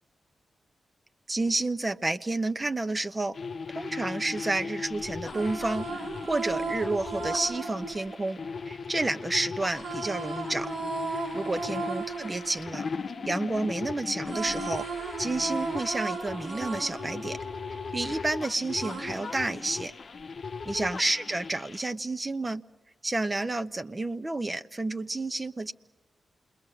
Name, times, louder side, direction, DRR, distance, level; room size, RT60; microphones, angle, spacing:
voice 1, 1.3-3.4 3.7-10.7 11.1-12.9 13.2-14.9 15.2-17.4 17.9-19.9 20.7-22.6 23.0-25.7, right 2 dB, 30° right, 9 dB, 0.9 m, -30 dB
sound 1, 3.3-21.9, left 5 dB, 60° left, 0.8 m, -38 dB
sound 2, 5.1-9.1 9.7-13.8 14.1-18.3 18.8-20.2, right 4 dB, 80° right, 3.9 m, -36 dB
28.0 x 21.5 x 7.8 m, 1.1 s
supercardioid pair, 45°, 0 cm